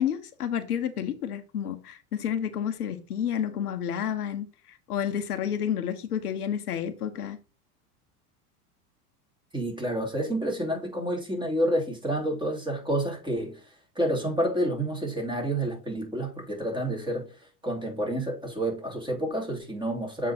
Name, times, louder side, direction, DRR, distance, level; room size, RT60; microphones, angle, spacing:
voice 1, 0.0-7.4, left 9 dB, 90° left, 1.0 m, -30 dB
voice 2, 9.5-13.6 13.9-17.3 17.6-20.3, right 1 dB, 10° right, 3.0 m, -29 dB
7.5 x 3.7 x 4.3 m
hypercardioid pair, 95°, 45 cm